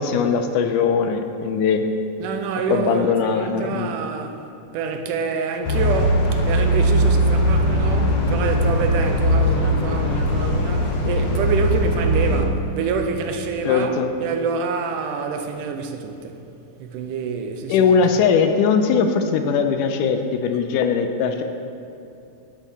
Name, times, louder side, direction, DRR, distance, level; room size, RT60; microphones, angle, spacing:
voice 1, 0.0-1.8 2.7-3.9 13.6-14.1 17.7-21.4, left 6 dB, 85° left, 2.2 m, -20 dB
voice 2, 2.2-4.4 4.7-13.9 14.2-16.5 16.8-17.9, right 5 dB, 90° right, 2.3 m, -27 dB
sound 1, 5.6-12.4, equal, 70° left, 2.4 m, -20 dB
10.5 x 8.1 x 4.2 m
omnidirectional pair, 3.7 m